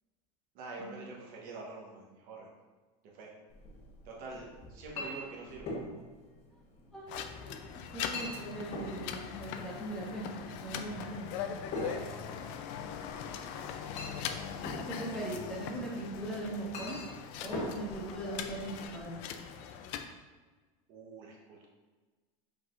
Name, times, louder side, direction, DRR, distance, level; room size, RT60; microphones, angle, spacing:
voice 1, 0.5-2.5 3.1-3.3 4.0-5.7 11.8-12.5 20.9-21.7, right 3 dB, 55° right, -2 dB, 1.0 m, -46 dB
Chink clink, 3.5-19.0, left 1 dB, 40° left, 0.9 m, -45 dB
voice 2, 6.9-7.5 7.9-11.4 14.9-17.0 17.4-19.2, right 1 dB, ahead, -6 dB, 1.2 m, -40 dB
sound 1, 7.1-20.0, left 8 dB, 60° left, 0.4 m, -41 dB
4.8 x 4.0 x 2.5 m, 1.3 s
supercardioid pair, 125°, 18 cm